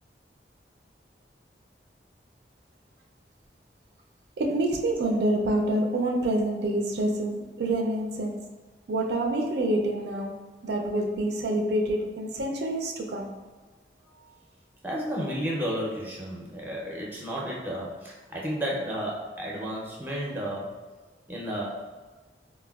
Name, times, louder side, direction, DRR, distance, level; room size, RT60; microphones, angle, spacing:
voice 1, 4.4-8.4 8.9-10.3 10.6-13.3, right 1 dB, 75° right, 2 dB, 0.4 m, -27 dB
voice 2, 14.8-20.7 21.3-21.8, equal, 10° right, -4 dB, 0.4 m, -32 dB
4.1 x 2.1 x 2.3 m, 1.3 s
head